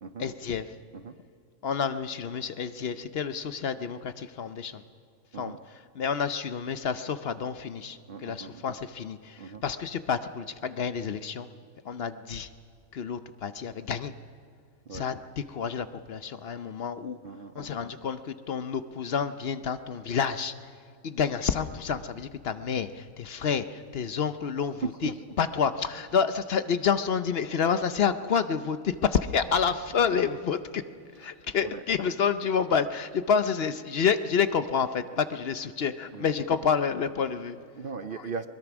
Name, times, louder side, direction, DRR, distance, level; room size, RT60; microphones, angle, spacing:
voice 1, 0.2-0.7 1.6-4.8 5.4-5.6 6.0-11.5 11.9-12.5 12.9-14.1 14.9-17.2 17.5-20.5 21.0-25.1 25.4-30.8 31.2-37.6, left 6 dB, 55° left, 11 dB, 0.9 m, -29 dB
voice 2, 8.1-8.6 9.4-9.6 14.9-15.1 17.2-17.8 24.8-25.1 31.5-31.8 36.1-36.3 37.7-38.5, right 5 dB, 55° right, 11 dB, 0.7 m, -38 dB
22.5 x 21.0 x 6.1 m, 2.4 s
omnidirectional pair, 1.3 m